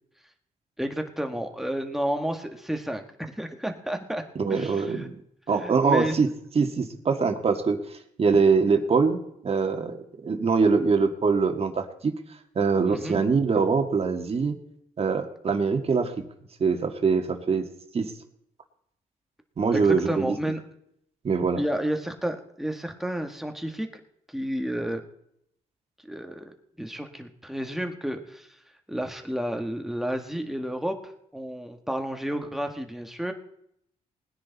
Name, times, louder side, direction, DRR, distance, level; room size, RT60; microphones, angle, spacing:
voice 1, 0.8-4.2 4.5-5.1 5.6-6.2 12.9-13.2 19.7-20.6 21.6-23.9 24.3-25.0 26.1-28.5 28.9-31.0 31.3-33.3, equal, ahead, 5 dB, 1.7 m, -31 dB
voice 2, 4.4-5.2 5.5-6.3 6.6-10.0 10.2-12.1 12.6-14.6 15.0-16.1 16.6-17.7 17.9-18.1 19.6-20.4 21.2-21.6, right 5 dB, 45° right, 5 dB, 1.9 m, -23 dB
19.5 x 9.8 x 4.1 m, 0.74 s
cardioid pair, 90°, 15 cm